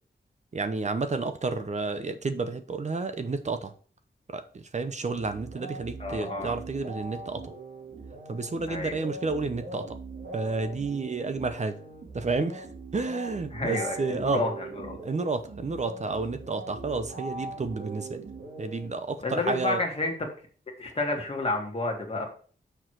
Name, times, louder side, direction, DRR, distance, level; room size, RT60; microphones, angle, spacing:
voice 1, 0.5-3.7 4.3-7.5 8.3-10.0 10.3-11.8 12.1-12.7 12.9-14.4 15.0-18.2 18.6-19.8, right 3 dB, 40° right, 10 dB, 0.8 m, -30 dB
sound 1, 5.1-19.4, right 3 dB, 70° right, 2.4 m, -41 dB
voice 2, 6.0-6.6 8.7-9.0 13.5-15.0 19.2-20.3 20.8-22.3, left 2 dB, 35° left, 1 dB, 2.0 m, -30 dB
6.4 x 4.9 x 6.0 m, 0.43 s
wide cardioid pair, 130°, 18 cm